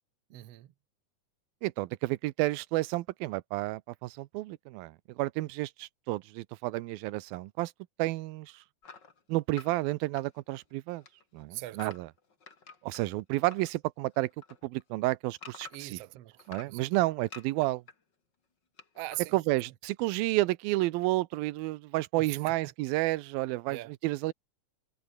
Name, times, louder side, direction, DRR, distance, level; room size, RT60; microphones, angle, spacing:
voice 1, 0.3-0.7 11.5-11.8 15.7-16.8 18.9-19.4 22.2-22.5 23.7-23.9, right 19 dB, 70° right, 1.5 m, -41 dB
voice 2, 1.6-7.7 8.0-8.6 9.3-11.0 11.3-12.1 12.8-14.3 14.6-16.0 16.5-17.8 19.3-24.3, right 19 dB, 85° right, 2.6 m, -31 dB
sound 1, 8.8-10.7 11.0-13.7 14.0-16.0 16.4-17.9 18.8-19.3, left 5 dB, 30° left, 3.1 m, -50 dB
omnidirectional pair, 4.1 m